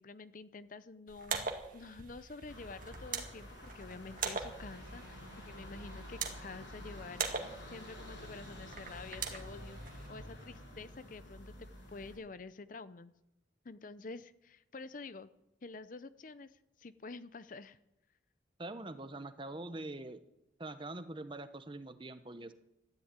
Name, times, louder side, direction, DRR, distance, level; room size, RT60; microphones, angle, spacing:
voice 1, 0.0-13.1 13.6-15.3 15.6-17.8, left 3 dB, 45° left, 14 dB, 0.6 m, -49 dB
sound 1, 1.1-10.1, right 5 dB, 45° right, 2.0 m, -42 dB
sound 2, 2.5-12.1, equal, 75° left, 6.5 m, -49 dB
voice 2, 18.6-20.2 20.6-22.5, right 2 dB, 25° right, 11 dB, 0.9 m, -44 dB
13.5 x 11.0 x 8.9 m, 0.86 s
head